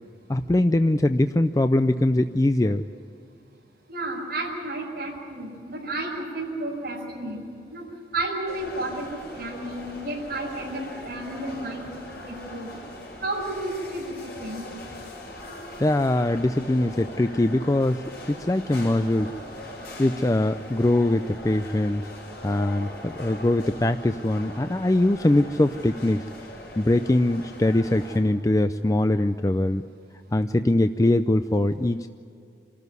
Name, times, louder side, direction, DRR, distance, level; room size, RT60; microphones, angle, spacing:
voice 1, 0.3-2.8 15.8-19.3 20.0-22.0 22.4-26.2 26.8-29.8 30.3-32.1, left 1 dB, 20° left, 9 dB, 0.4 m, -22 dB
voice 2, 3.9-7.4 7.7-7.8 8.1-11.8 12.2-12.8 13.2-14.6, right 2 dB, 55° right, -4 dB, 5.9 m, -32 dB
sound 1, 8.5-28.2, left 1 dB, 60° left, 6.9 m, -41 dB
27.5 x 13.5 x 9.5 m, 2.6 s
head